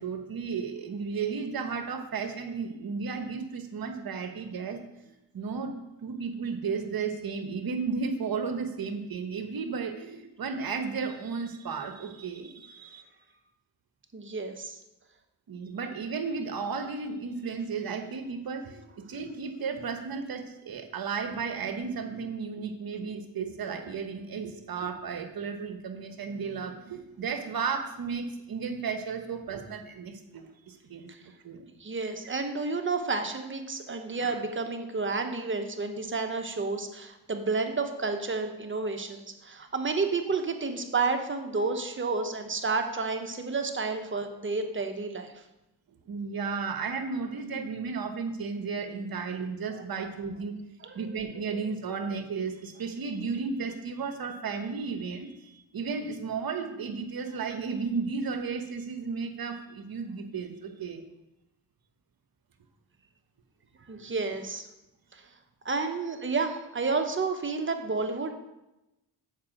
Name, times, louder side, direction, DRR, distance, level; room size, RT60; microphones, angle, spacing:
voice 1, 0.0-13.0 15.5-31.1 31.4-31.7 46.1-50.6 50.9-61.0, right 5 dB, 55° right, 7 dB, 1.2 m, -34 dB
voice 2, 14.1-14.8 31.1-31.2 31.8-45.4 50.8-51.1 51.5-51.6 63.9-64.7 65.1-65.2 65.6-68.3, right 4 dB, 25° right, 5 dB, 1.2 m, -31 dB
7.3 x 4.8 x 6.1 m, 0.94 s
supercardioid pair, 60°, 43 cm